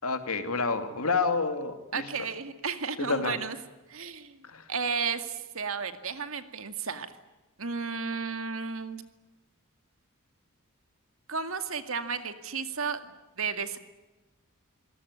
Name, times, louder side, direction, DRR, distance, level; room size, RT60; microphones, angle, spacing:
voice 1, 0.0-2.1 3.0-3.4 4.4-4.6, left 4 dB, 80° left, 8 dB, 2.7 m, -29 dB
voice 2, 1.9-3.6 3.9-4.4 4.7-7.1 7.6-9.1 11.3-13.8, right 5 dB, 70° right, 9 dB, 2.2 m, -33 dB
27.0 x 18.0 x 9.9 m, 1.1 s
head